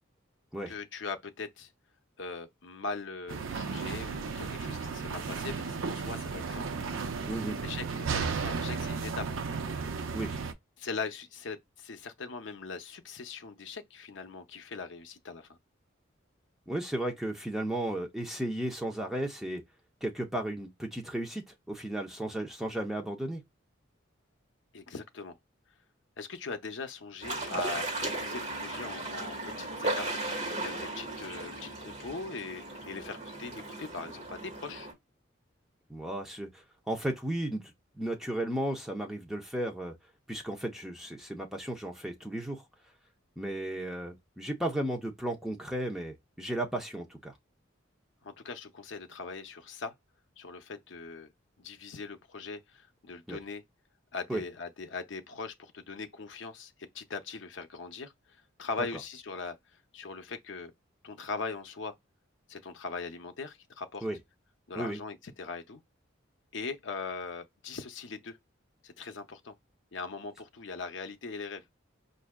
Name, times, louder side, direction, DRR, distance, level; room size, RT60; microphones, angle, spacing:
voice 1, 0.7-1.7 2.2-6.6 7.6-9.3 10.8-15.6 24.7-25.4 26.2-34.9 48.2-49.9 50.4-51.3 51.6-53.6 54.1-59.6 59.9-60.7 61.0-61.9 62.5-64.0 64.7-65.8 66.5-68.4 68.8-69.5 69.9-71.6, left 4 dB, 65° left, 0.6 m, -40 dB
sound 1, 3.3-10.5, right 5 dB, 75° right, 0.5 m, -34 dB
voice 2, 7.3-7.6 10.1-10.4 16.7-19.6 20.0-23.4 35.9-39.9 40.3-42.6 43.4-47.3 53.3-53.4 54.3-54.4 64.0-64.2 64.8-65.0, right 1 dB, ahead, 0.7 m, -34 dB
sound 2, 27.2-34.9, right 2 dB, 30° right, 1.6 m, -36 dB
4.6 x 2.6 x 2.3 m
head